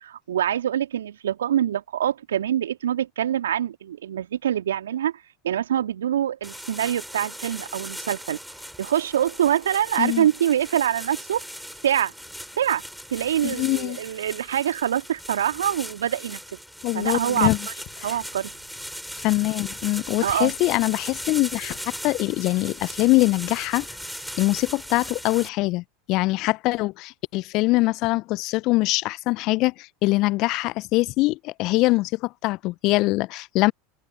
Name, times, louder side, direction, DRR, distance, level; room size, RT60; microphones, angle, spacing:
voice 1, 0.0-5.1 5.4-8.4 8.8-11.4 11.8-12.1 12.6-12.8 13.1-16.4 16.9-17.5 18.0-18.5 20.2-20.5, right 10 dB, 75° right, 2.3 m, -25 dB
sound 1, 6.4-25.5, equal, ahead, 5.5 m, -38 dB
voice 2, 13.4-14.0 16.8-17.6 18.0-18.2 19.2-23.9 24.4-33.7, left 21 dB, 50° left, 0.6 m, -23 dB
figure-of-eight pair, 80°, 0 cm